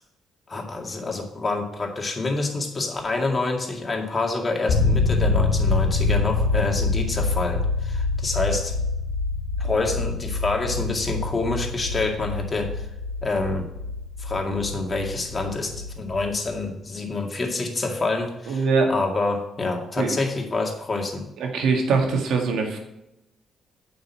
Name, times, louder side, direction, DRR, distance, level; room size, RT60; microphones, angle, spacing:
voice 1, 0.5-8.8 9.6-12.9 13.2-13.7 14.2-18.6 18.9-21.3, left 3 dB, 30° left, 2 dB, 2.1 m, -27 dB
sound 1, 4.7-16.6, left 3 dB, 90° left, 1.6 m, -26 dB
voice 2, 18.5-18.9 20.0-20.2 21.4-22.8, right 4 dB, 80° right, 3 dB, 1.9 m, -22 dB
9.0 x 5.5 x 7.1 m, 0.89 s
cardioid pair, 90°, 0 cm